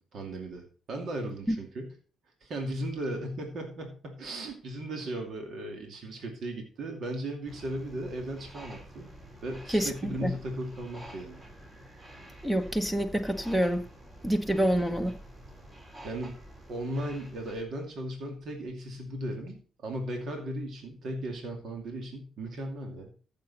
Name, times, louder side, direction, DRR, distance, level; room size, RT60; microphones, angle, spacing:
voice 1, 0.0-1.9 2.4-9.1 9.4-11.4 16.0-16.4 16.7-23.1, right 1 dB, 65° right, 2.5 m, -36 dB
sound 1, 7.5-17.6, right 1 dB, 30° right, 4.0 m, -49 dB
voice 2, 12.4-13.8 14.2-15.2, equal, 10° right, 1.0 m, -27 dB
14.5 x 6.9 x 4.1 m
cardioid pair, 90°, 0 cm